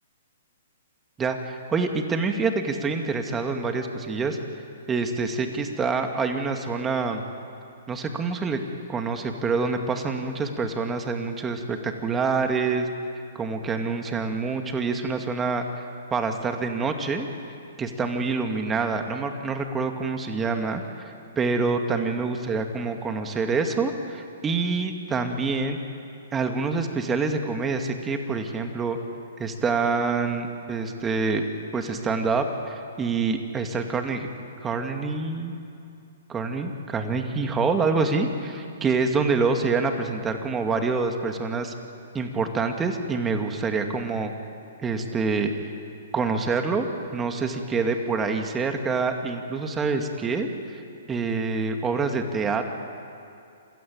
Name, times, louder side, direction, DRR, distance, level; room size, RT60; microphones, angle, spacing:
voice 1, 1.2-4.4 4.9-7.2 7.9-8.6 8.9-12.9 13.3-15.6 16.1-17.3 17.8-25.8 26.3-29.0 29.4-31.4 31.7-34.3 34.6-35.5 36.3-41.7 42.1-44.3 44.8-45.5 46.1-46.9 47.1-50.5 50.7-50.8 51.1-52.7, right 4 dB, 15° right, 5 dB, 2.2 m, -26 dB
27.5 x 16.5 x 8.9 m, 2.5 s
hypercardioid pair, 130°, 0 cm